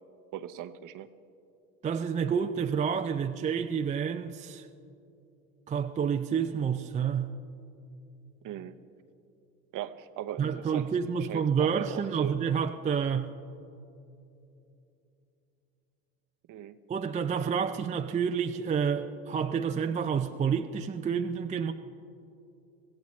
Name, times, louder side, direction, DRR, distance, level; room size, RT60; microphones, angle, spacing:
voice 1, 0.3-1.1 8.4-8.8 9.7-10.9 11.2-12.3 16.5-16.8, right 11 dB, 45° right, 11 dB, 0.8 m, -38 dB
voice 2, 1.8-4.7 5.7-7.3 10.4-13.3 16.9-21.7, right 7 dB, 15° right, 6 dB, 0.5 m, -29 dB
24.5 x 16.5 x 3.2 m, 2.8 s
hypercardioid pair, 80°, 44 cm